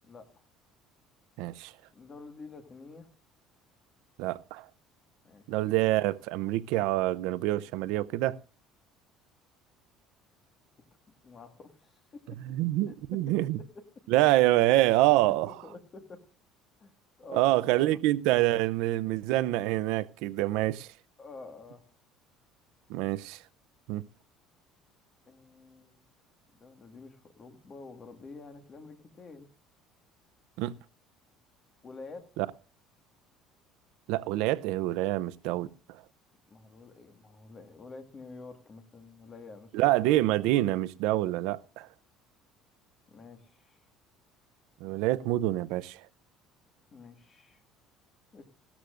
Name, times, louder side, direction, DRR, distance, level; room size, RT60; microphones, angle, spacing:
voice 1, 0.0-0.4 1.9-3.1 5.2-5.4 11.2-12.0 12.9-13.0 13.3-13.4 13.7-13.8 15.5-16.2 16.8-16.9 17.2-17.5 17.9-18.0 21.2-21.9 25.3-26.0 26.6-29.5 31.8-32.3 36.5-39.9 43.1-43.8 46.9-47.6 48.3-48.5, left 3 dB, 25° left, 1.6 m, -48 dB
voice 2, 1.4-1.7 4.2-4.7 5.5-8.4 12.5-13.6 14.1-15.5 17.3-20.9 22.9-23.4 23.9-24.1 30.6-30.7 32.4-32.5 34.1-35.7 39.7-41.9 44.8-46.0, right 16 dB, 75° right, 0.5 m, -26 dB
17.0 x 13.0 x 2.5 m
cardioid pair, 170°, 0 cm